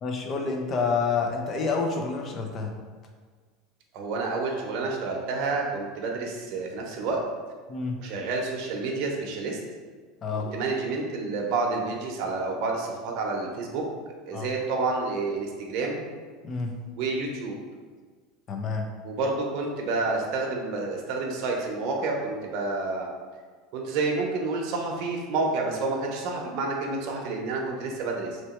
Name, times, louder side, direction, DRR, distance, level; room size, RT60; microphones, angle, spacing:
voice 1, 0.0-2.7 7.7-8.0 10.2-10.5 14.3-14.5 16.4-16.7 18.5-18.9, left 4 dB, 35° left, 2 dB, 0.7 m, -28 dB
voice 2, 3.9-7.2 8.0-9.6 10.3-13.8 14.3-16.0 17.0-17.6 19.0-23.1 23.7-28.4, right 3 dB, 60° right, 0 dB, 0.8 m, -29 dB
3.2 x 2.9 x 4.3 m, 1.5 s
supercardioid pair, 115°, 0 cm